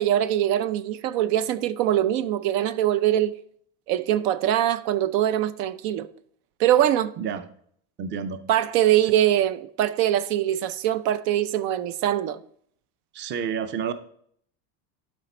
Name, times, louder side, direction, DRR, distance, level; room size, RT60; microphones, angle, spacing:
voice 1, 0.0-3.3 3.9-6.1 6.6-7.1 8.5-12.4, right 12 dB, 70° right, 0.7 m, -23 dB
voice 2, 7.2-7.5 8.0-8.4 9.0-9.1 13.1-13.9, right 7 dB, 25° right, 0.5 m, -30 dB
12.0 x 5.1 x 4.3 m
cardioid pair, 155°, 43 cm